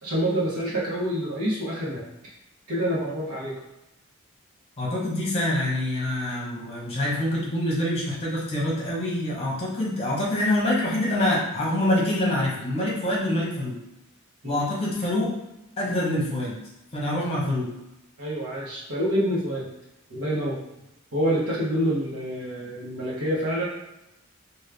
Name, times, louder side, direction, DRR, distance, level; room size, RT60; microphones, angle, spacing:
voice 1, 0.0-2.0 2.7-3.6 14.4-14.7 17.4-17.6 18.2-19.7 20.1-20.6 21.1-23.7, equal, 90° right, -6 dB, 0.9 m, -27 dB
voice 2, 4.8-13.8 14.4-15.3 15.8-16.6 16.9-17.7, left 1 dB, 25° left, -5 dB, 0.9 m, -25 dB
3.5 x 2.3 x 3.3 m, 0.91 s
head